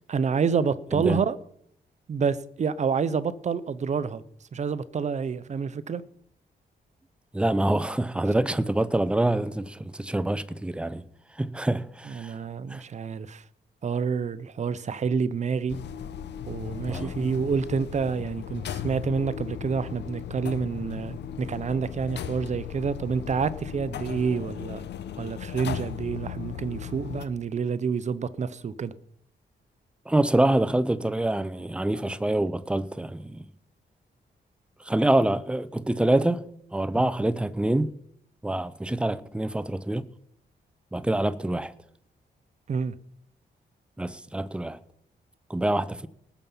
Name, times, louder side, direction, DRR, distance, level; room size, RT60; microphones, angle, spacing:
voice 1, 0.1-1.4 2.1-4.2 4.5-6.0 12.1-13.4 13.8-15.8 16.5-24.9 25.2-28.9 36.9-37.1 42.7-42.9, right 6 dB, 40° right, 0.7 m, -28 dB
voice 2, 7.3-11.0 11.4-12.3 12.7-12.8 16.9-17.1 30.1-33.5 34.8-37.9 38.4-40.0 40.9-41.7 44.0-44.8 45.5-46.1, right 1 dB, 5° right, 0.6 m, -26 dB
sound 1, 15.7-27.3, left 9 dB, 90° left, 0.9 m, -37 dB
19.0 x 7.1 x 5.6 m
wide cardioid pair, 140°, 17 cm